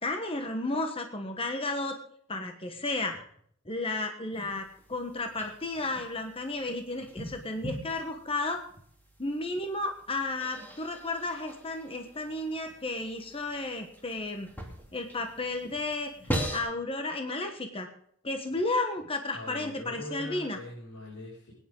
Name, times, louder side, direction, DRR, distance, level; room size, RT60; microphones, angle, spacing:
voice 1, 0.0-2.0 2.3-3.2 3.7-8.6 9.2-14.5 14.9-16.1 16.5-17.9 18.2-20.6, left 2 dB, 25° left, 5 dB, 1.3 m, -33 dB
sound 1, 4.3-16.6, equal, 10° left, 2.7 m, -41 dB
voice 2, 19.3-21.5, left 1 dB, 75° left, -8 dB, 5.9 m, -42 dB
21.0 x 10.0 x 3.8 m, 0.64 s
head